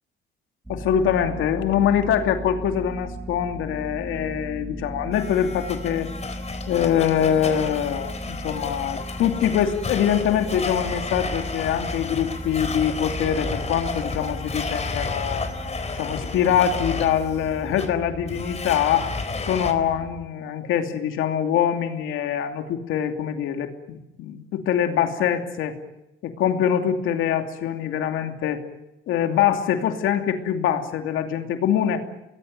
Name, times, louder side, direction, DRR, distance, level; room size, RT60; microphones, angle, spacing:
sound 1, 0.6-20.3, equal, 10° right, 7.1 m, -36 dB
voice 1, 0.7-6.1 6.7-15.5 15.9-19.1 19.5-25.8 26.2-28.6 29.1-32.0, left 9 dB, 85° left, 5 dB, 2.8 m, -24 dB
Domestic sounds home sounds, 5.1-19.7, left 4 dB, 35° left, 4.1 m, -32 dB
24.5 x 20.5 x 9.2 m, 0.91 s
cardioid pair, 90°, 20 cm